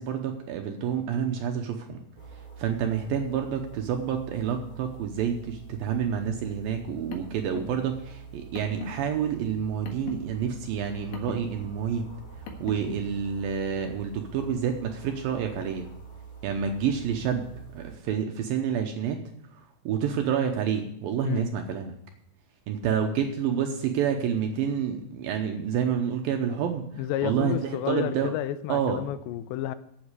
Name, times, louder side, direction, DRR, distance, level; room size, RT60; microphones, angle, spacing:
voice 1, 0.0-2.0 2.6-12.1 12.6-15.9 16.4-17.5 17.7-19.2 19.9-22.0 22.7-26.9 27.2-28.3 28.7-29.0, right 8 dB, 75° right, 2.2 m, -28 dB
sound 1, 2.2-18.0, right 6 dB, 25° left, 3.0 m, -45 dB
Car, 6.8-13.0, left 4 dB, 70° left, 3.3 m, -42 dB
voice 2, 27.0-29.8, left 11 dB, 85° left, 2.9 m, -31 dB
9.2 x 8.2 x 8.2 m
omnidirectional pair, 5.0 m